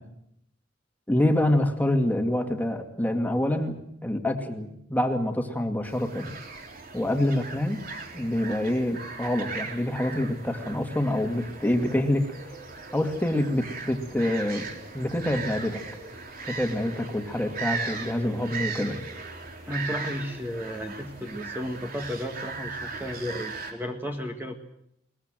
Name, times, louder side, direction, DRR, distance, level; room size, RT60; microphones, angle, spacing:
voice 1, 1.1-6.3 6.9-7.8 8.1-12.6 12.9-14.6 14.9-15.8 16.4-19.0, left 1 dB, 10° left, 4 dB, 2.3 m, -26 dB
sound 1, 5.8-23.7, right 4 dB, 50° right, 3.6 m, -38 dB
voice 2, 19.7-24.6, equal, 10° right, 3 dB, 1.8 m, -33 dB
22.0 x 21.0 x 7.6 m, 0.75 s
head